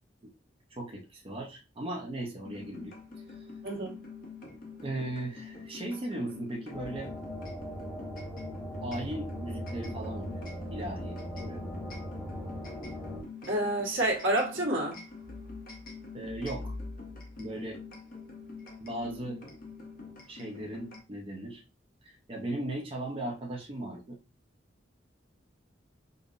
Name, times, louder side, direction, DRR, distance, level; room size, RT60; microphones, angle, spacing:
voice 1, 0.7-2.9 4.8-7.1 8.8-10.4 10.7-11.6 16.1-16.7 17.4-17.8 18.8-19.4 20.3-21.6 22.0-24.2, right 1 dB, 30° right, 0.5 m, -37 dB
sound 1, 2.4-21.0, left 4 dB, 50° left, 0.9 m, -45 dB
voice 2, 3.6-4.0 13.5-15.0, right 1 dB, 80° right, 1.3 m, -28 dB
sound 2, 6.7-13.2, equal, 10° left, 0.8 m, -39 dB
5.2 x 2.0 x 2.5 m
head